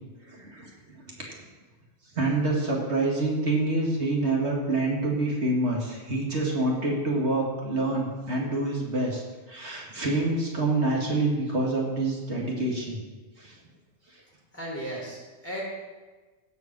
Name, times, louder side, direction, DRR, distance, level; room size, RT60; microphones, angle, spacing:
voice 1, 0.2-0.7 1.2-1.3 2.1-13.0 13.4-13.6 14.1-14.2, right 2 dB, 80° right, -2 dB, 2.4 m, -27 dB
voice 2, 14.5-15.6, right 1 dB, 10° left, -4 dB, 3.7 m, -36 dB
16.5 x 5.5 x 6.1 m, 1.3 s
omnidirectional pair, 1.1 m